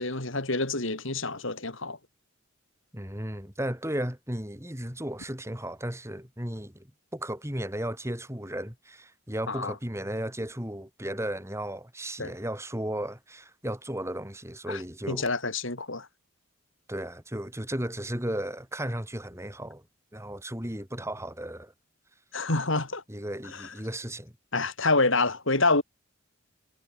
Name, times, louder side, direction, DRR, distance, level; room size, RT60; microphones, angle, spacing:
voice 1, 0.0-2.0 9.5-9.7 12.2-12.3 14.7-14.8 15.1-16.1 22.3-23.0 24.5-25.8, left 3 dB, 60° left, 4.0 m, -27 dB
voice 2, 2.9-6.9 7.1-15.3 16.9-19.8 20.1-21.7 23.1-24.3, right 1 dB, 15° right, 7.8 m, -35 dB
head